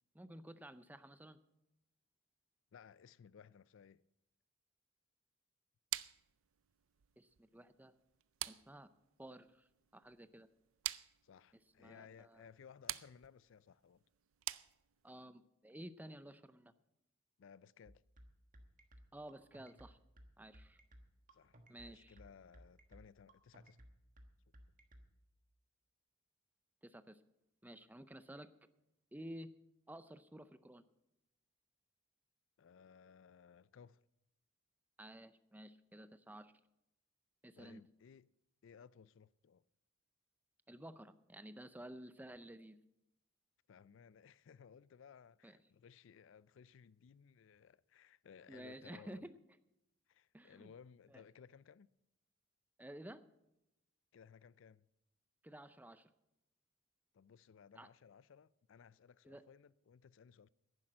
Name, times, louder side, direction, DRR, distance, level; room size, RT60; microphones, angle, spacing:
voice 1, 0.1-1.4 7.2-7.9 8.4-8.9 9.2-10.5 11.8-12.5 15.0-16.7 19.1-20.0 20.4-20.8 21.7-22.2 26.8-27.2 27.6-28.5 29.1-29.5 29.9-30.8 35.0-36.5 37.4-37.8 40.7-42.8 45.4-45.6 48.5-49.4 50.3-50.7 51.1-51.2 52.8-53.2 55.4-56.1 57.8-57.9 59.2-59.4, right 1 dB, 10° right, 0.5 m, -53 dB
voice 2, 2.7-4.0 11.2-14.0 17.4-18.0 21.3-23.8 32.6-34.0 37.6-38.3 38.6-39.6 43.7-49.3 50.1-51.9 54.1-54.9 57.1-60.5, left 7 dB, 65° left, 0.4 m, -60 dB
sound 1, 5.9-15.2, right 15 dB, 80° right, 0.5 m, -48 dB
sound 2, 17.9-25.1, equal, 40° right, 1.4 m, -59 dB
11.0 x 10.0 x 7.5 m
head